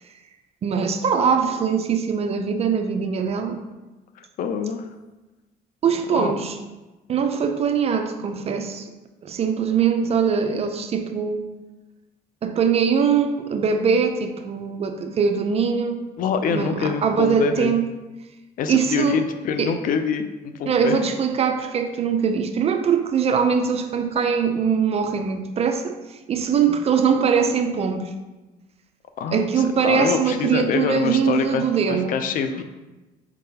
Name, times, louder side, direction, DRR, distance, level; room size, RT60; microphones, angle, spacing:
voice 1, 0.6-3.6 5.8-6.6 7.1-8.9 9.2-11.4 12.4-16.0 16.5-17.8 18.7-19.2 19.6-19.7 20.7-28.1 29.3-32.1, right 6 dB, 35° right, 7 dB, 0.4 m, -22 dB
voice 2, 4.4-4.9 6.1-6.3 16.2-17.7 18.6-21.1 29.2-32.6, left 6 dB, 55° left, 8 dB, 0.4 m, -25 dB
4.5 x 3.7 x 2.7 m, 1.1 s
cardioid pair, 110°, 17 cm